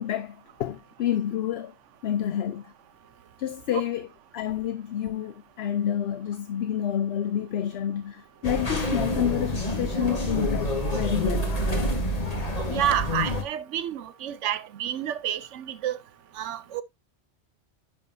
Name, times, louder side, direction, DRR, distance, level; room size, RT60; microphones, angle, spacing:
voice 1, 0.0-1.7 2.0-2.7 3.4-4.1 4.3-11.5, left 10 dB, 65° left, 0.8 m, -29 dB
sound 1, 8.4-13.4, left 1 dB, 30° left, 1.6 m, -27 dB
voice 2, 12.7-16.0 16.4-16.8, right 10 dB, 80° right, 1.0 m, -29 dB
10.0 x 5.9 x 2.6 m
omnidirectional pair, 1.2 m